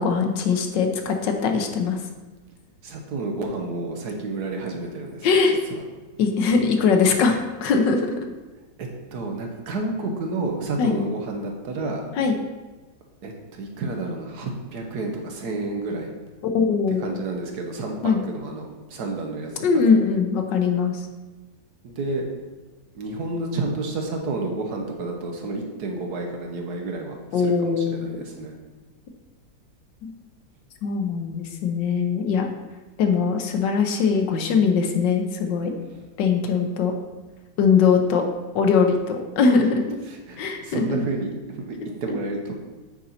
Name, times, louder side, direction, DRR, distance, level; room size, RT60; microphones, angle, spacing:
voice 1, 0.0-2.0 5.2-5.6 6.2-8.1 10.8-10.9 12.1-12.3 16.4-17.1 18.0-18.2 19.6-21.0 27.3-28.2 30.0-30.1 30.8-32.5 33.0-35.8 36.2-36.9 37.6-38.3 38.5-40.0 40.4-41.0, left 5 dB, 90° left, 4 dB, 1.5 m, -21 dB
voice 2, 2.8-5.8 8.8-12.0 13.2-16.1 17.0-19.5 19.8-19.9 21.8-22.2 22.9-28.5 35.9-36.0 40.3-42.5, right 3 dB, 70° right, 2 dB, 1.5 m, -30 dB
9.0 x 4.3 x 4.2 m, 1.2 s
omnidirectional pair, 1.9 m